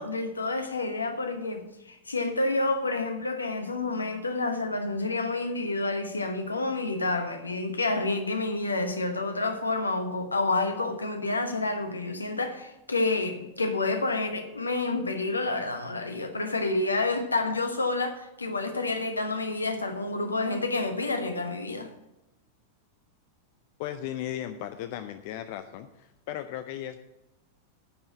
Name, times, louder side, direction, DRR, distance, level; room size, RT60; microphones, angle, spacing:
voice 1, 0.0-21.9, left 2 dB, 80° left, 1.1 m, -29 dB
voice 2, 23.8-27.0, left 11 dB, 50° left, 0.5 m, -36 dB
10.0 x 5.6 x 7.3 m
figure-of-eight pair, 90°, 0 cm